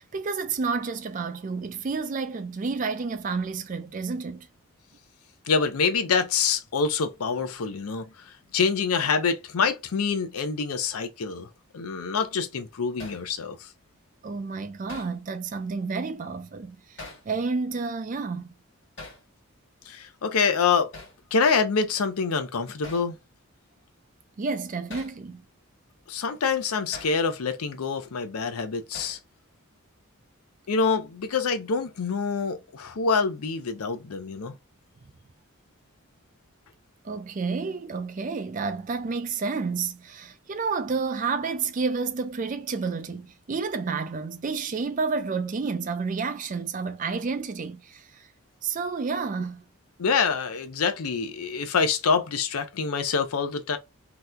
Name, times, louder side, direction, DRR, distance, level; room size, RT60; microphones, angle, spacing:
voice 1, 0.0-4.5 14.2-17.0 17.3-18.5 24.4-25.4 37.0-48.3 48.6-49.6, right 4 dB, 35° right, 0.4 m, -30 dB
voice 2, 5.5-11.5 11.7-13.7 19.9-20.9 21.3-23.2 26.1-29.2 30.7-34.5 50.0-53.8, left 5 dB, 85° left, 0.5 m, -26 dB
Hammer, 13.0-13.3 14.9-15.2 17.0-17.3 19.0-19.2 20.9-21.2 22.8-23.1 24.9-25.2 26.9-27.2 28.9-29.2, left 2 dB, 55° left, 1.4 m, -42 dB
2.9 x 2.2 x 3.6 m
head